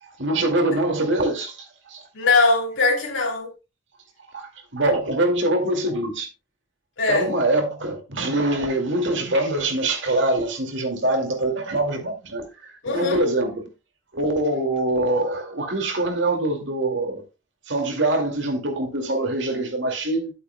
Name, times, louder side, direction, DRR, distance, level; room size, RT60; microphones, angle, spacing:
voice 1, 0.2-2.0 4.3-6.3 7.1-13.7 14.1-17.2 17.7-20.3, right 2 dB, 65° right, 2.3 m, -24 dB
voice 2, 2.1-3.5 7.0-7.3 12.8-13.2, left 3 dB, 75° left, 2.8 m, -21 dB
11.0 x 8.3 x 2.2 m
head